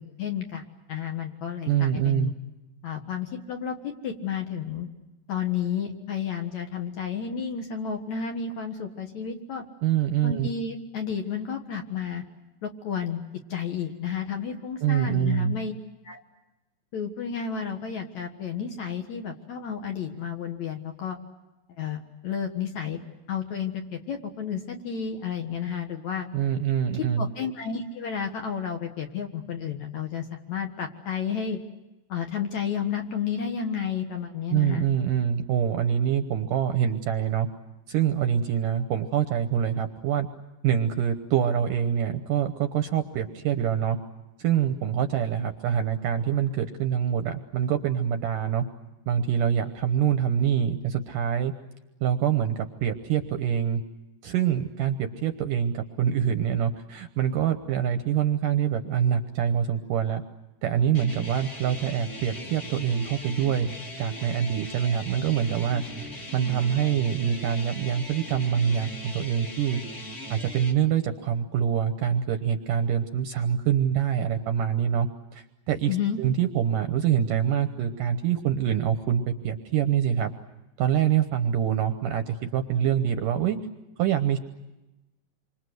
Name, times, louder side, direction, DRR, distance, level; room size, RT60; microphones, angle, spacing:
voice 1, 0.0-2.3 2.8-4.9 5.3-9.6 10.2-12.2 12.6-13.2 13.5-15.7 16.0-16.2 16.9-21.2 21.8-23.0 23.3-26.3 27.2-31.6 32.1-34.9 75.9-76.2, left 7 dB, 55° left, 4 dB, 2.3 m, -31 dB
voice 2, 1.6-2.3 9.8-10.5 14.8-15.6 26.3-27.3 34.5-37.5 37.9-40.3 40.6-44.0 44.4-48.6 49.1-51.5 52.0-53.8 54.2-60.2 60.6-63.7 64.0-65.8 66.3-69.8 70.3-80.3 80.8-83.6 84.0-84.4, right 9 dB, 70° right, 8 dB, 2.2 m, -25 dB
sound 1, 60.9-70.7, equal, 20° left, 2.1 m, -39 dB
28.0 x 25.0 x 7.9 m, 1.0 s
omnidirectional pair, 4.7 m